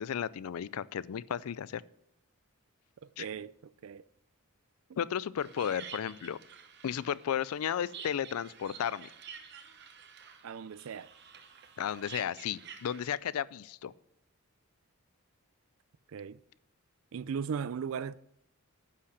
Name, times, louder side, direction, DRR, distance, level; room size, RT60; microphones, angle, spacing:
voice 1, 0.0-1.8 3.2-3.3 5.0-6.4 6.8-9.1 11.8-13.9, left 9 dB, 90° left, 0.4 m, -34 dB
voice 2, 3.2-4.0 10.4-11.1 16.1-16.4 17.1-18.1, right 6 dB, 70° right, 0.4 m, -37 dB
sound 1, 5.4-13.2, right 7 dB, 50° right, 0.9 m, -50 dB
10.0 x 5.7 x 6.5 m
head